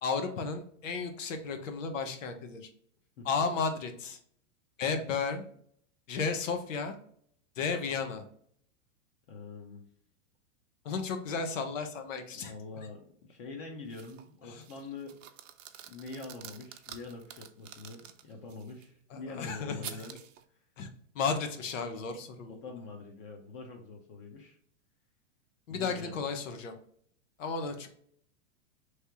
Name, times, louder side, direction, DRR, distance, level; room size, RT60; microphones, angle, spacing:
voice 1, 0.0-2.7 3.2-4.2 4.8-5.4 6.1-6.9 7.6-8.2 10.8-12.5 14.5-14.6 19.1-19.8 20.8-20.9 21.1-22.6 25.7-26.7 27.4-27.9, left 5 dB, 85° left, 6 dB, 1.0 m, -33 dB
voice 2, 9.3-9.8 12.3-15.2 15.9-20.2 22.5-24.6 25.7-26.3, left 3 dB, 45° left, 1 dB, 0.9 m, -45 dB
sound 1, 13.9-14.3 14.6-18.9 19.8-20.4, right 10 dB, 80° right, 0.7 m, -48 dB
3.3 x 2.9 x 4.7 m, 0.63 s
supercardioid pair, 150°, 37 cm